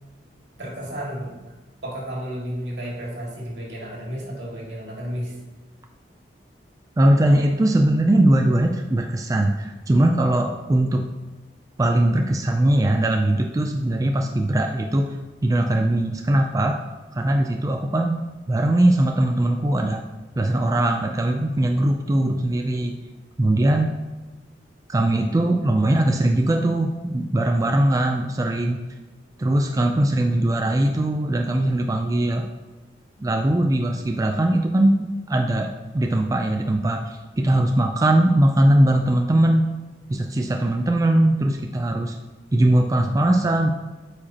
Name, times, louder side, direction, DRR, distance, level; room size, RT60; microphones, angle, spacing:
voice 1, 0.6-1.4 1.8-5.4, equal, 75° right, -3 dB, 2.1 m, -32 dB
voice 2, 7.0-11.1 11.8-15.2 15.4-16.8 17.1-18.2 18.5-20.0 20.4-23.0 23.4-24.0 24.9-28.8 29.4-32.5 33.2-39.7 40.1-42.2 42.5-43.7, right 1 dB, 20° right, 3 dB, 0.3 m, -20 dB
8.7 x 4.9 x 2.8 m, 1.2 s
head